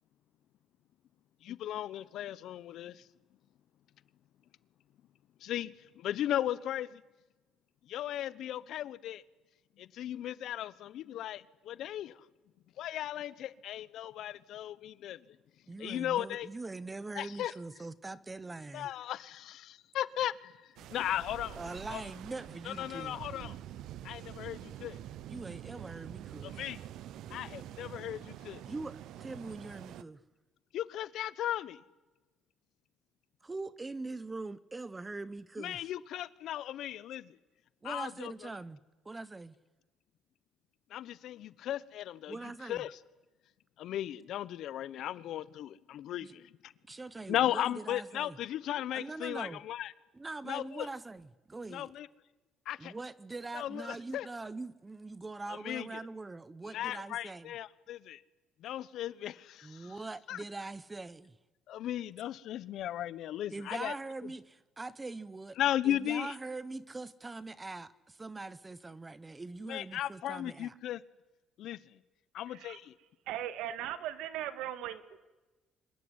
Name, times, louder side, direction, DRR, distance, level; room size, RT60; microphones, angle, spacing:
voice 1, 1.4-3.0 5.4-7.0 7.9-9.2 9.8-12.2 12.8-15.2 15.8-16.5 17.1-17.5 18.7-20.5 20.9-21.6 21.9-22.0 22.6-23.6 24.0-25.0 26.4-26.8 27.3-28.6 30.7-31.8 35.6-37.4 37.8-38.5 40.9-42.4 42.6-43.0 43.8-46.7 47.3-49.9 50.4-50.9 51.7-52.1 52.7-52.8 53.5-54.3 55.5-56.0 56.7-58.2 58.6-59.9 60.3-60.4 61.7-63.9 65.6-66.4 69.7-71.0 71.6-71.8 72.3-72.9, left 12 dB, 60° left, 18 dB, 1.1 m, -36 dB
voice 2, 15.7-18.9 21.6-23.2 25.3-26.6 28.7-30.2 33.4-35.8 37.8-39.5 42.3-42.8 46.2-46.3 46.9-48.4 48.9-49.6 50.1-51.9 52.8-57.5 59.6-61.4 63.5-65.6 65.8-70.7, right 3 dB, 15° right, 18 dB, 0.9 m, -42 dB
sound 1, 20.8-30.0, right 12 dB, 65° right, 0.9 m, -46 dB
voice 3, 73.3-75.2, right 11 dB, 85° right, 13 dB, 2.0 m, -38 dB
26.0 x 22.0 x 9.8 m, 1.1 s
cardioid pair, 145°, 0 cm